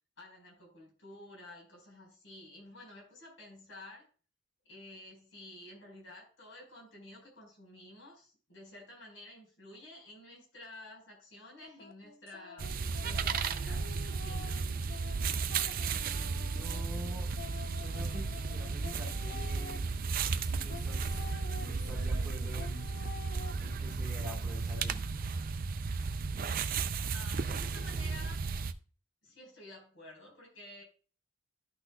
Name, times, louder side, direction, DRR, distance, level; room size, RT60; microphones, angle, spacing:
voice 1, 0.2-4.1 4.6-12.7 13.0-14.7 26.5-28.4 29.2-30.8, left 1 dB, 65° left, -1 dB, 4.8 m, -51 dB
sound 1, 11.6-19.8 20.7-23.5, left 4 dB, 45° left, 0.7 m, -49 dB
sound 2, 12.6-28.7, right 4 dB, 45° right, 0.4 m, -34 dB
voice 2, 16.5-17.3 17.8-19.8 20.4-23.0 23.6-25.0, equal, 5° right, -4 dB, 2.1 m, -46 dB
13.0 x 6.0 x 2.3 m, 0.38 s
head